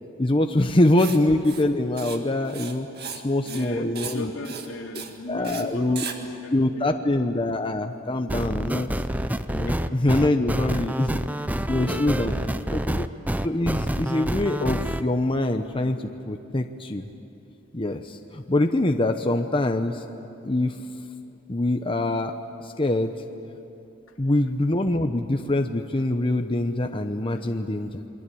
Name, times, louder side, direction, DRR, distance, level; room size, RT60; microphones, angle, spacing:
voice 1, 0.2-2.9 3.2-4.3 5.3-6.0 6.5-8.9 9.5-11.2 11.7-12.3 12.7-13.1 13.4-17.1 17.7-20.1 20.4-20.8 21.5-22.3 22.6-23.1 24.2-28.0, left 1 dB, 25° left, 5 dB, 0.8 m, -24 dB
Writing, 1.0-1.2 1.4-1.7 2.0-2.2 2.4-3.2 3.5-3.7 3.9-4.2 4.4-4.7 4.9-5.1 5.4-5.6 6.0-6.2, right 7 dB, 50° right, 1.9 m, -36 dB
voice 2, 3.4-7.1 9.7-9.8 11.8-12.6 27.3-27.4, left 2 dB, 80° left, 2 dB, 2.8 m, -37 dB
sound 1, 8.3-15.0, right 1 dB, 10° right, 0.6 m, -27 dB
28.5 x 22.5 x 8.5 m, 2.8 s
head